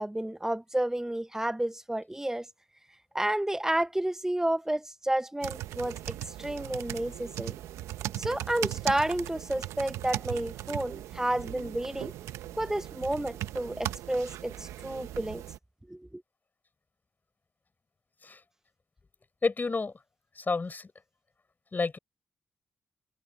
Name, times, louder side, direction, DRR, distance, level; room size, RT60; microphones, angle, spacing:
voice 1, 0.0-2.5 3.1-7.5 8.2-12.1 12.5-15.4 15.9-16.2, right 1 dB, 10° right, 0.7 m, -31 dB
sound 1, 5.4-15.6, right 13 dB, 90° right, 0.9 m, -38 dB
voice 2, 19.4-19.9 20.3-20.9 21.7-22.0, left 4 dB, 40° left, 6.4 m, -30 dB
supercardioid pair, 50°, 5 cm